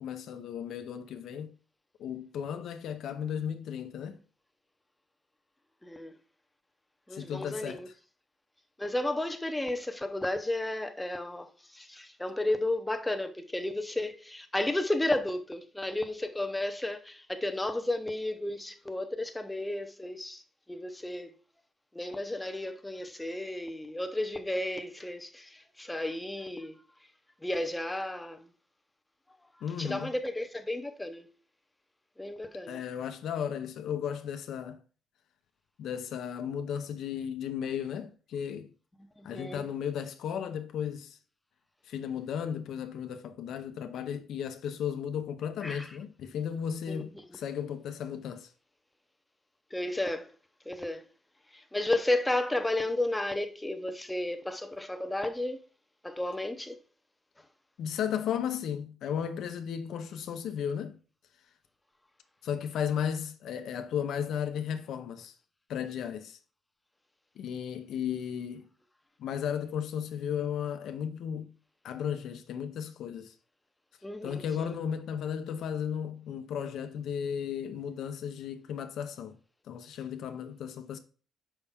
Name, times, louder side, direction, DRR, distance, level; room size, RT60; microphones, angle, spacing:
voice 1, 0.0-1.5 2.0-4.2 7.1-7.9 29.6-30.1 32.7-34.8 35.8-38.7 39.2-41.2 41.8-48.5 57.8-61.0 62.4-65.3 65.7-66.4 67.4-68.7 69.2-71.5 71.8-73.3 74.2-79.4 79.7-81.0, left 8 dB, 70° left, 0.7 m, -35 dB
voice 2, 5.8-6.2 7.1-7.9 8.8-20.4 20.7-21.3 21.9-26.8 27.4-28.5 29.8-31.3 32.2-32.8 39.2-39.6 45.6-45.9 46.9-47.1 49.7-50.3 50.7-51.0 51.5-55.6 56.0-56.8 74.0-74.7, left 1 dB, 5° left, 0.7 m, -33 dB
7.0 x 5.6 x 3.5 m
cardioid pair, 165°, 0 cm